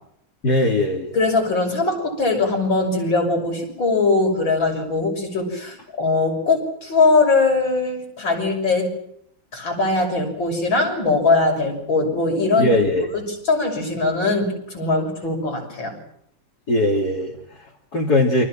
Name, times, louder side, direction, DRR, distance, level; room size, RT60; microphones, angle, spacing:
voice 1, 0.4-1.2 12.6-13.1 16.7-18.5, left 1 dB, 50° left, -3 dB, 3.8 m, -20 dB
voice 2, 1.1-9.0 9.5-12.7 13.1-13.2 13.5-16.0, left 3 dB, 75° left, 3 dB, 7.0 m, -21 dB
29.0 x 25.5 x 6.1 m, 0.71 s
omnidirectional pair, 2.1 m